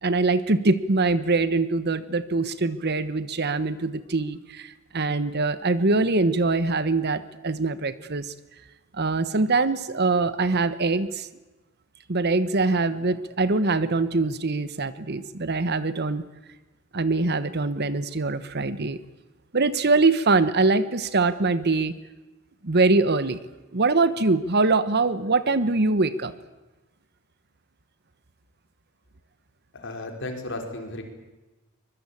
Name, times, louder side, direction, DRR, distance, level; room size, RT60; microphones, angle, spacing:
voice 1, 0.0-8.3 8.9-11.3 12.1-16.2 16.9-19.0 19.5-22.0 22.6-23.4 23.7-26.3, right 3 dB, 50° right, 14 dB, 1.1 m, -23 dB
voice 2, 29.7-31.0, left 2 dB, 60° left, 4 dB, 4.8 m, -34 dB
24.0 x 21.5 x 8.6 m, 1.1 s
head